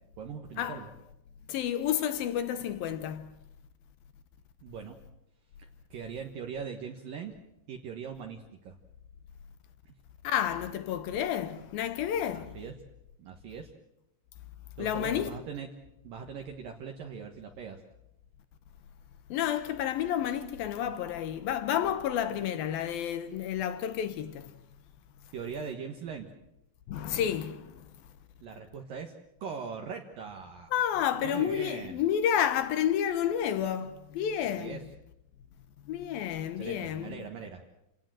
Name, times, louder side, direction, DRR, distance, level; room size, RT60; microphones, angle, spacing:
voice 1, 0.2-0.9 4.6-5.0 5.6-7.3 7.7-8.8 9.9-10.0 12.3-12.7 13.2-13.7 14.8-15.7 16.0-17.8 25.3-26.3 28.4-29.1 29.4-30.7 31.2-32.0 34.6-34.8 36.6-37.7, right 6 dB, 60° right, 2.7 m, -40 dB
voice 2, 1.5-3.4 10.2-12.6 14.8-15.4 19.3-24.5 26.9-28.0 30.7-34.8 35.9-37.3, left 10 dB, 70° left, 2.4 m, -30 dB
28.5 x 18.0 x 7.7 m
omnidirectional pair, 5.1 m